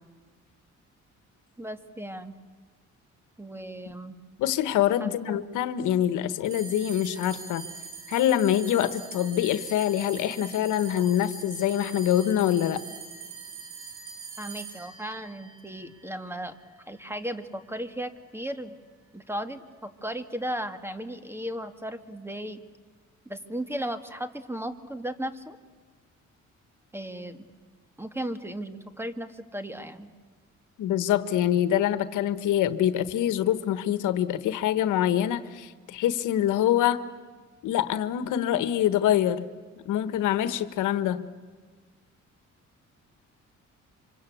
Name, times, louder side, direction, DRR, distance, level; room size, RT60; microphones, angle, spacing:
voice 1, 1.6-2.3 3.4-4.2 5.0-5.4 14.4-16.6 16.9-18.7 19.1-22.6 23.3-25.6 26.9-27.4 28.0-30.1, right 1 dB, 10° right, 9 dB, 2.1 m, -36 dB
voice 2, 4.4-7.7 8.1-12.8 30.8-37.0 37.6-39.4 39.8-41.3, left 11 dB, 85° left, 13 dB, 1.3 m, -25 dB
sound 1, 6.4-17.1, right 6 dB, 85° right, 3.9 m, -43 dB
27.5 x 25.5 x 8.4 m, 1.4 s
cardioid pair, 90°, 30 cm